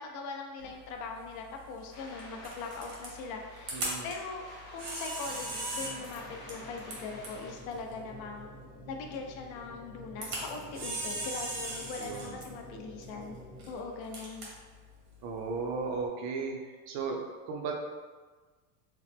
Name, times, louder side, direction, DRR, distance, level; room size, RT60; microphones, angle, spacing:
voice 1, 0.0-4.4 4.7-8.5 8.9-13.3 13.7-14.5, left 4 dB, 60° left, 2 dB, 0.5 m, -41 dB
Camera, 0.6-16.1, right 1 dB, 80° right, 1.2 m, -41 dB
sound 1, 1.9-7.5, left 1 dB, 40° left, 0.9 m, -50 dB
voice 2, 3.7-4.1 12.0-12.4 15.2-17.7, right 4 dB, 60° right, 1 dB, 0.6 m, -36 dB
sound 2, 5.2-13.7, right 1 dB, 5° left, 0.6 m, -50 dB
3.0 x 2.0 x 3.3 m, 1.4 s
cardioid pair, 130°, 45 cm